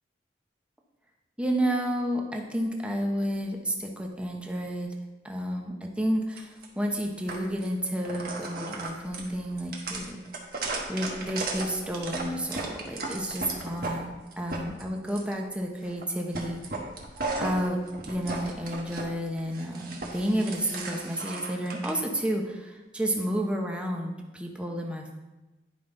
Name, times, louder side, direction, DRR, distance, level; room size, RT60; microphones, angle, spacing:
voice 1, 1.4-4.9 5.2-10.2 10.9-16.6 17.4-17.8 18.1-25.1, equal, 5° right, 1 dB, 0.9 m, -31 dB
sound 1, 6.4-6.7 7.3-7.7 8.0-14.0 14.3-15.3 15.8-16.1 16.3-19.0 19.4-21.9, right 3 dB, 55° right, 1.3 m, -35 dB
10.0 x 5.5 x 3.8 m, 1.1 s
head